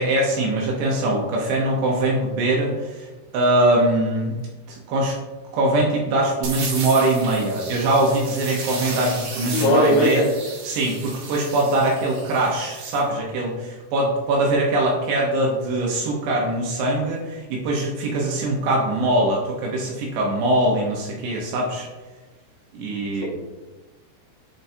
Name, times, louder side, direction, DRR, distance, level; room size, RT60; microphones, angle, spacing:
voice 1, 0.0-3.1 3.3-4.4 4.7-5.2 5.5-10.2 10.6-21.9 22.7-23.3, right 1 dB, 75° right, -2 dB, 3.0 m, -22 dB
sound 1, 6.4-13.0, right 4 dB, 60° right, 2.0 m, -34 dB
voice 2, 9.5-10.3 23.2-23.3, left 1 dB, 65° left, -2 dB, 2.7 m, -18 dB
11.0 x 4.6 x 2.7 m, 1.2 s
omnidirectional pair, 5.3 m